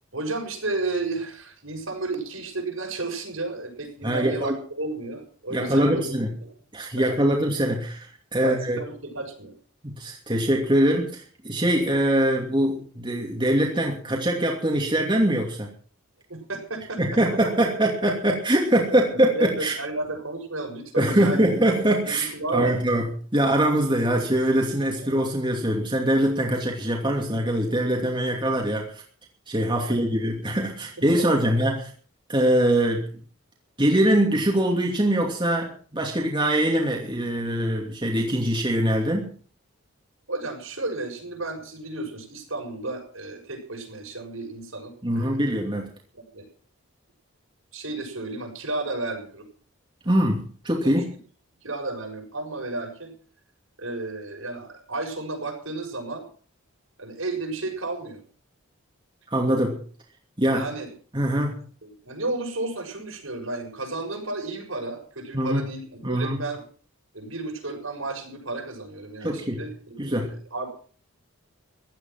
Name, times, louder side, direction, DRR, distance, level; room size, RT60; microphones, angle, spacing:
voice 1, 0.1-6.2 6.9-7.1 8.4-9.5 16.3-17.2 18.9-21.5 22.0-22.7 25.0-25.1 29.8-30.0 31.0-31.5 40.3-45.4 46.3-46.5 47.7-49.4 51.6-53.1 53.8-56.2 57.0-58.2 60.5-60.9 61.8-66.6 67.1-70.7, right 2 dB, 70° right, 1 dB, 6.5 m, -33 dB
voice 2, 4.0-4.6 5.5-6.3 6.7-8.8 9.8-15.7 17.0-19.7 21.0-29.0 29.5-31.9 32.3-33.1 33.8-39.3 45.0-45.9 50.0-51.1 59.3-59.8 60.4-60.6 61.1-61.6 65.3-65.7 66.0-66.4 69.2-69.6 70.0-70.3, right 1 dB, 20° right, -1 dB, 2.8 m, -23 dB
16.0 x 12.5 x 6.0 m, 0.43 s
head